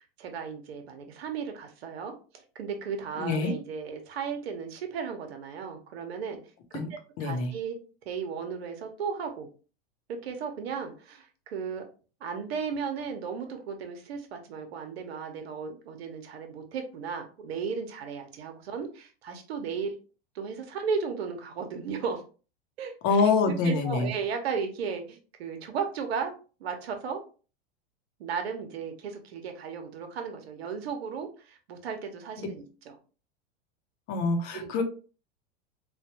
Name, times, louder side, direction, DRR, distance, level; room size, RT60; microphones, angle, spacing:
voice 1, 0.2-6.4 7.2-7.8 8.1-9.5 10.1-11.8 12.2-19.9 20.3-22.2 22.8-26.3 26.6-27.2 28.2-32.9 34.5-34.8, right 6 dB, 80° right, 5 dB, 0.9 m, -35 dB
voice 2, 3.2-3.5 6.7-6.9 7.2-7.5 23.0-24.1 32.4-32.5 34.1-34.8, left 4 dB, 45° left, 6 dB, 0.7 m, -25 dB
3.3 x 2.3 x 2.8 m, 0.36 s
hypercardioid pair, 115°, 31 cm